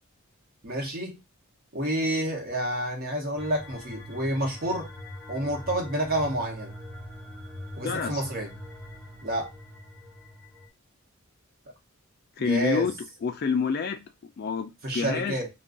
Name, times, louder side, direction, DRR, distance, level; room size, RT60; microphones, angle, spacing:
voice 1, 0.6-1.2 1.7-4.9 5.3-6.7 7.8-8.5 9.2-9.5 12.4-12.9 14.8-15.5, right 1 dB, 45° right, 0.9 m, -29 dB
sound 1, 3.4-10.7, left 1 dB, 10° left, 0.6 m, -42 dB
voice 2, 7.8-8.2 12.4-12.9 13.2-14.0 14.4-15.3, left 5 dB, 45° left, 0.3 m, -27 dB
2.4 x 2.2 x 3.7 m
head